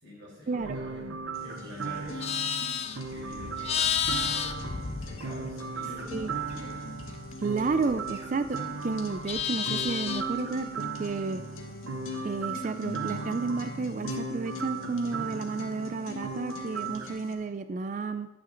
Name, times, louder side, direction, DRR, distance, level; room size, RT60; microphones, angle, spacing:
voice 1, 0.0-2.2 3.1-3.7 4.0-6.9, left 1 dB, 55° right, -5 dB, 4.2 m, -46 dB
sound 1, 0.6-17.1, right 5 dB, 80° right, 0.7 m, -38 dB
sound 2, 1.3-17.3, left 2 dB, 90° left, 1.4 m, -42 dB
Livestock farm animals working animals, 2.0-5.7 6.0-8.5 8.8-10.4, left 8 dB, 30° left, 0.4 m, -32 dB
voice 2, 7.4-11.4 12.2-18.3, right 4 dB, 40° right, 11 dB, 0.3 m, -31 dB
11.0 x 9.1 x 3.9 m, 1.1 s
head